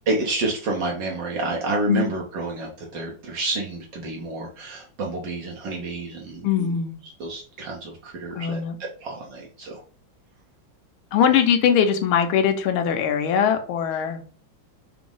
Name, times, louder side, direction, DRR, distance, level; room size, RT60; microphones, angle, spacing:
voice 1, 0.1-6.7 7.2-8.6 9.0-9.8, right 2 dB, 70° right, -2 dB, 1.4 m, -29 dB
voice 2, 6.4-7.0 8.3-8.8 11.1-14.2, left 8 dB, 90° left, 6 dB, 1.5 m, -21 dB
5.0 x 2.0 x 3.7 m, 0.41 s
omnidirectional pair, 2.2 m